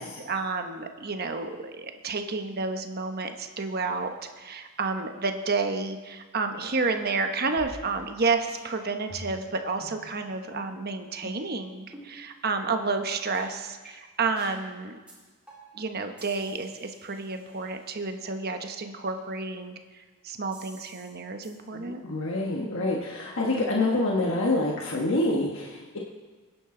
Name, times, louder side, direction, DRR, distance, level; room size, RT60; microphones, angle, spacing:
voice 1, 0.0-15.0 15.7-19.8 20.2-22.0, right 4 dB, 45° right, 6 dB, 1.1 m, -30 dB
sound 1, 7.6-8.2 8.5-8.6 9.1-9.5 9.8-10.0 10.5-10.7 11.2-11.5 11.9-12.1 12.6-12.8 13.3-13.4 13.8-13.9 14.4-14.6 15.1-15.2 15.5-15.8 16.2-18.0 20.5-21.1 21.4-21.5, equal, 5° right, 4.1 m, -47 dB
voice 2, 21.7-26.0, left 2 dB, 60° left, -2 dB, 1.4 m, -27 dB
23.0 x 10.0 x 3.9 m, 1.3 s
head